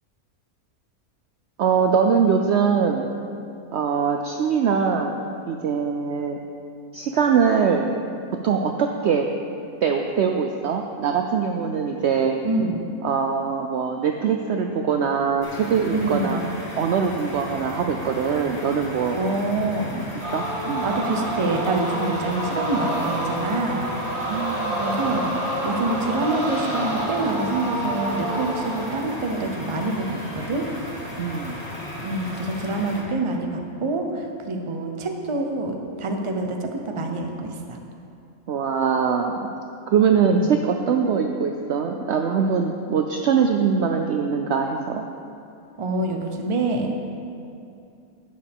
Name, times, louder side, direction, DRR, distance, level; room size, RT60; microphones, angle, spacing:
voice 1, 1.6-3.1 3.7-5.2 5.5-6.4 6.9-7.8 8.4-9.3 9.8-12.4 13.0-16.4 16.8-19.2 19.9-20.0 20.3-20.9 24.3-24.8 31.2-31.6 38.5-39.3 39.9-45.1, right 6 dB, 65° right, 3 dB, 0.7 m, -22 dB
voice 2, 12.4-12.8 15.9-16.5 19.1-20.0 20.8-24.0 24.4-30.7 32.0-37.8 40.2-40.5 45.8-46.9, right 2 dB, 30° right, 3 dB, 0.6 m, -26 dB
sound 1, 15.4-33.0, left 1 dB, 30° left, 1.7 m, -36 dB
sound 2, 20.2-29.1, right 1 dB, 45° right, 2.1 m, -28 dB
12.0 x 9.3 x 3.6 m, 2.6 s
omnidirectional pair, 1.5 m